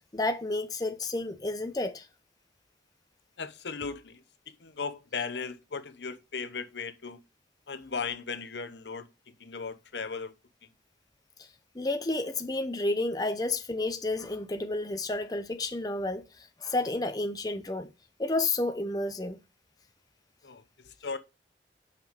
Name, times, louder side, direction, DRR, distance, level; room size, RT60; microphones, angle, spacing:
voice 1, 0.1-2.0 11.8-16.2 16.6-17.9 18.2-19.4, left 2 dB, 20° left, 0.7 m, -30 dB
voice 2, 3.4-4.2 4.6-7.2 7.7-9.1 9.4-10.3 20.4-21.2, left 5 dB, 80° left, 0.9 m, -37 dB
5.9 x 5.9 x 5.1 m
head